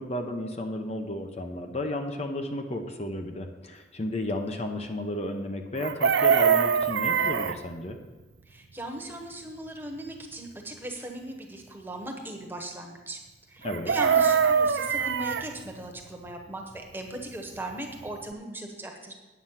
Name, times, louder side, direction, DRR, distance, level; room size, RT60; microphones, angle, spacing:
voice 1, 0.0-8.0 13.6-13.9, left 1 dB, 35° left, 4 dB, 0.8 m, -33 dB
Chicken rooster, 5.8-7.6 13.7-15.5 17.7-17.8 18.1-18.3, right 6 dB, 75° right, 0.5 m, -23 dB
voice 2, 8.5-13.2 13.5-19.1, right 1 dB, 10° right, 2 dB, 1.2 m, -38 dB
9.3 x 7.7 x 5.7 m, 1.2 s
head